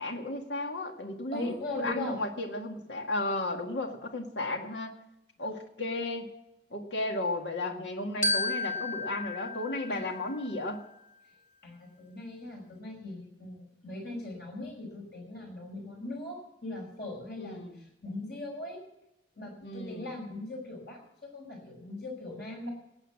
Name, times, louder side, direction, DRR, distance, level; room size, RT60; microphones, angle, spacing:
voice 1, 0.0-5.0 5.4-6.3 6.7-10.8 17.4-17.8 19.6-20.1, left 2 dB, 80° left, 4 dB, 1.9 m, -34 dB
voice 2, 1.3-2.2 9.9-10.0 11.6-18.8 19.4-22.7, left 2 dB, 60° left, 1 dB, 5.7 m, -40 dB
Glockenspiel, 8.2-10.7, left 2 dB, 45° left, 2.3 m, -33 dB
19.0 x 8.3 x 7.3 m, 0.88 s
head